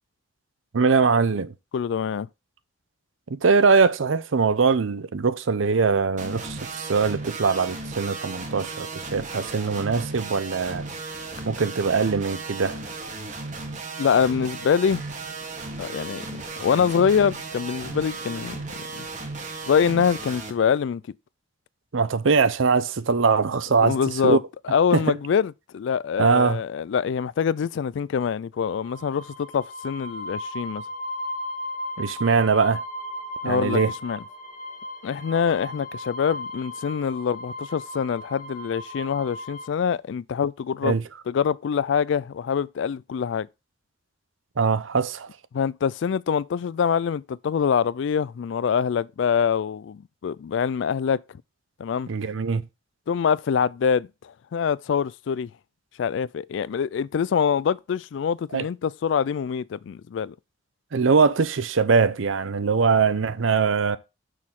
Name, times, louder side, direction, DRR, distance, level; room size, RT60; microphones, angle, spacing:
voice 1, 0.7-1.5 3.3-10.8 11.5-12.8 21.9-24.0 24.2-24.4 24.9-25.0 26.2-26.6 32.0-32.8 33.4-33.9 40.8-41.0 44.6-45.3 52.1-52.7 58.5-58.6 60.9-64.0, right 5 dB, 80° right, 0.6 m, -22 dB
voice 2, 1.7-2.3 14.0-15.0 15.8-16.2 16.6-18.6 18.9-19.1 19.7-21.0 23.7-24.4 24.6-30.8 33.4-34.2 35.0-41.0 41.3-43.5 45.5-51.4 51.8-52.1 53.1-55.5 56.0-60.4, left 7 dB, 70° left, 0.3 m, -25 dB
sound 1, 6.2-20.5, right 3 dB, 40° right, 1.3 m, -35 dB
sound 2, 28.8-39.7, left 1 dB, 40° left, 1.2 m, -36 dB
6.4 x 6.3 x 3.7 m
head